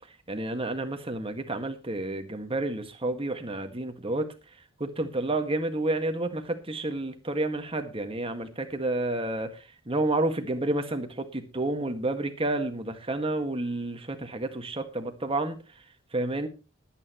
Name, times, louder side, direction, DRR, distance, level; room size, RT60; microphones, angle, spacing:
voice 1, 0.3-4.3 4.8-15.6 16.1-16.5, right 2 dB, 25° right, 6 dB, 1.7 m, -30 dB
20.5 x 9.2 x 3.0 m, 0.31 s
head